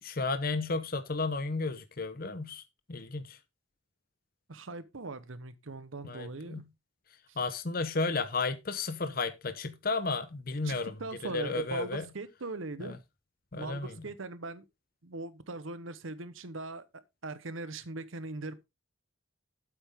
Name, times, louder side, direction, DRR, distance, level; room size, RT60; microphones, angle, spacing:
voice 1, 0.0-2.6 2.9-3.4 6.0-6.6 7.4-10.9 11.2-12.0 12.8-13.0 13.5-13.9, left 3 dB, 45° left, 0.8 m, -33 dB
voice 2, 4.5-6.6 7.3-7.4 10.6-12.9 13.5-14.6 15.0-18.6, right 3 dB, 80° right, 1.0 m, -40 dB
9.1 x 8.0 x 3.6 m
head